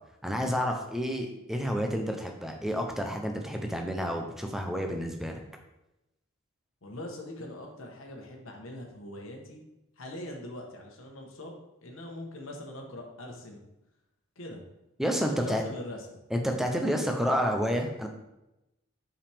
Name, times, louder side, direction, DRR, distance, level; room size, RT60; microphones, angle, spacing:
voice 1, 0.2-5.4 15.0-15.6 16.3-18.1, equal, ahead, 3 dB, 0.6 m, -30 dB
voice 2, 6.8-9.6 10.0-13.6 14.4-14.7 15.2-16.2, left 1 dB, 65° left, 1 dB, 1.1 m, -42 dB
5.5 x 5.1 x 3.5 m, 0.92 s
head